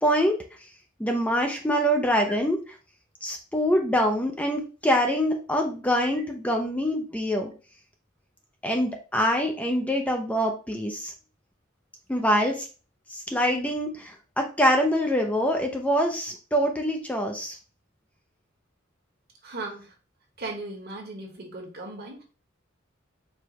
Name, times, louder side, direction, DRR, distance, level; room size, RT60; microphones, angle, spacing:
voice 1, 0.0-0.3 1.0-2.6 3.2-7.5 8.6-11.1 12.1-12.7 13.3-17.6, equal, 5° left, 2 dB, 0.5 m, -24 dB
voice 2, 19.4-19.9 20.4-22.2, right 2 dB, 55° right, 1 dB, 1.4 m, -37 dB
4.6 x 3.1 x 3.0 m, 0.35 s
head